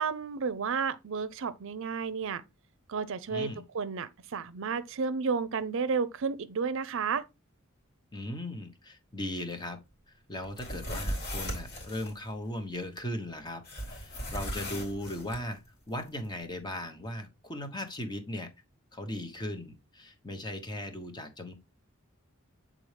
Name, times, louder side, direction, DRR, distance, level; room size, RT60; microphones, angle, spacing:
voice 1, 0.0-2.4 2.9-7.3, right 5 dB, 65° right, 0.5 m, -32 dB
voice 2, 3.3-3.6 8.1-9.8 10.3-15.6 15.9-18.5 18.9-21.5, left 1 dB, 20° left, 1.0 m, -38 dB
sound 1, 10.4-12.1 13.6-15.4, equal, 50° left, 2.9 m, -37 dB
7.7 x 3.8 x 3.3 m
head